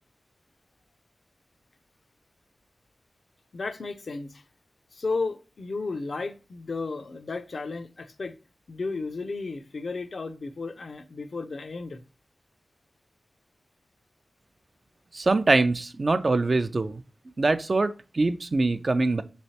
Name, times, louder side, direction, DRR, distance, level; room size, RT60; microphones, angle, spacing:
voice 1, 3.5-4.4 4.9-8.4 8.7-12.0, left 3 dB, 75° left, 0.4 m, -33 dB
voice 2, 15.1-17.0 17.4-19.2, right 3 dB, 55° right, 0.3 m, -23 dB
3.1 x 3.1 x 2.7 m
cardioid pair, 45°, 0 cm